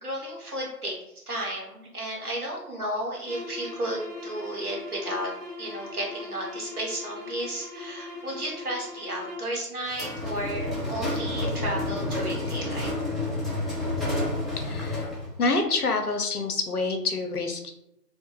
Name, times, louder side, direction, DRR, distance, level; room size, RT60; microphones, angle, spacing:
voice 1, 0.0-5.3 5.6-12.9, right 1 dB, 65° right, -2 dB, 0.9 m, -33 dB
sound 1, 3.2-9.6, left 2 dB, 40° right, 0.8 m, -40 dB
sound 2, 9.9-15.4, left 2 dB, ahead, 0.5 m, -29 dB
voice 2, 14.6-15.0 15.4-17.7, left 3 dB, 65° left, 5 dB, 0.5 m, -27 dB
2.3 x 2.1 x 2.9 m, 0.82 s
figure-of-eight pair, 175°, 49 cm